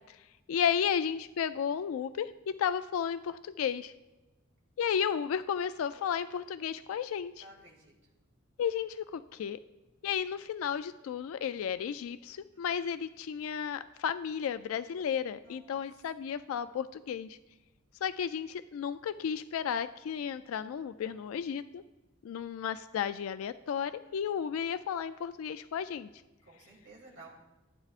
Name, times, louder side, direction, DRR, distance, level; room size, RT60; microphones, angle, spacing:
voice 1, 0.5-3.9 4.8-7.4 8.6-9.6 10.0-17.4 18.0-21.8 22.2-26.1, left 8 dB, 85° left, 12 dB, 0.3 m, -33 dB
voice 2, 7.4-7.9 12.5-12.7 15.4-15.8 20.7-21.3 24.0-24.5 26.4-27.3, right 2 dB, 60° right, -3 dB, 2.7 m, -56 dB
14.5 x 9.1 x 2.4 m, 1.1 s
head